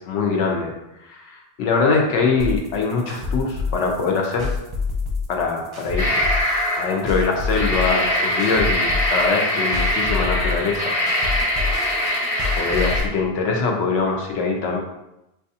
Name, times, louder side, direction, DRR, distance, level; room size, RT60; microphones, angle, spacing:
voice 1, 0.1-0.7 1.1-4.5 5.3-6.2 6.8-11.0 12.6-14.8, left 4 dB, 90° left, 1 dB, 0.9 m, -23 dB
sound 1, 2.4-13.1, left 4 dB, 35° right, 0.5 m, -27 dB
sound 2, 6.0-7.0 7.4-13.0, equal, 35° left, 0.7 m, -23 dB
4.8 x 2.3 x 2.6 m, 0.90 s
omnidirectional pair, 1.2 m